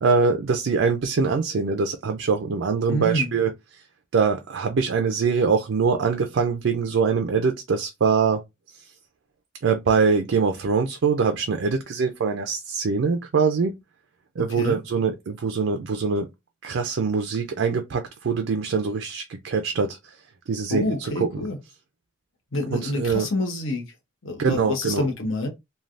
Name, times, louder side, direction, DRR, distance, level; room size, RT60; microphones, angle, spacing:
voice 1, 0.0-3.5 4.1-8.4 9.6-13.8 14.4-16.3 16.6-20.0 20.5-21.5 22.7-23.3 24.4-25.1, right 5 dB, 65° right, 0.4 m, -23 dB
voice 2, 2.9-3.3 14.5-14.8 20.7-21.6 22.5-23.8 24.2-25.5, left 1 dB, 70° left, 0.9 m, -27 dB
3.2 x 2.2 x 2.5 m
head